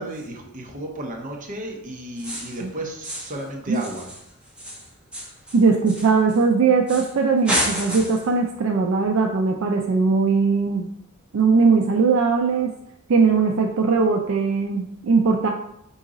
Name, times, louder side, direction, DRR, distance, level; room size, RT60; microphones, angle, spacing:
voice 1, 0.0-4.1, right 1 dB, 40° right, 0 dB, 0.8 m, -33 dB
sound 1, 2.2-2.6 3.0-3.4 3.7-6.4 6.9-7.1 7.4-8.3, equal, 5° right, 0.9 m, -30 dB
voice 2, 5.5-10.9 11.3-12.7 13.1-15.5, right 4 dB, 65° right, 2 dB, 0.4 m, -19 dB
3.7 x 2.7 x 4.7 m, 0.78 s
head